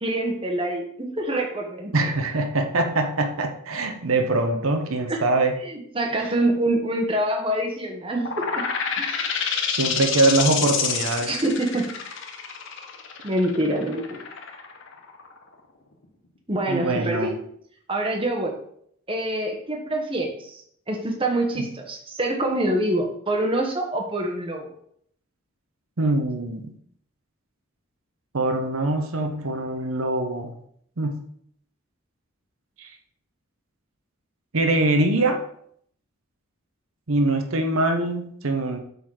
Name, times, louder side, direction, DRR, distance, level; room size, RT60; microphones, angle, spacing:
voice 1, 0.0-1.9 5.1-5.2 5.6-8.6 9.0-9.3 11.2-11.9 13.2-14.2 16.5-17.3 17.9-18.6 19.1-20.6 20.9-24.7, right 1 dB, 25° right, 2 dB, 1.1 m, -25 dB
voice 2, 1.9-5.6 6.2-6.3 9.7-11.3 16.7-17.4 21.5-21.6 26.0-26.7 28.3-30.5 31.0-31.2 32.8-32.9 34.5-35.4 37.1-38.8, right 2 dB, 80° right, 5 dB, 0.9 m, -23 dB
sound 1, 8.2-15.5, left 6 dB, 60° left, 1.0 m, -28 dB
7.8 x 4.1 x 4.8 m, 0.67 s
head